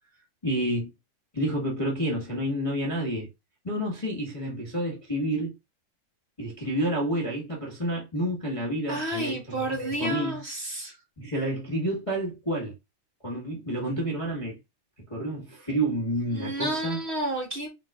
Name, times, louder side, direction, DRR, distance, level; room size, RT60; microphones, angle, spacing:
voice 1, 0.4-0.9 1.3-3.3 3.6-5.5 6.4-10.4 11.2-12.8 13.2-14.6 15.1-17.0, right 1 dB, 30° left, 0.5 m, -29 dB
voice 2, 8.9-10.9 16.3-17.7, right 1 dB, 40° right, 0.9 m, -31 dB
5.9 x 3.7 x 2.4 m
omnidirectional pair, 3.6 m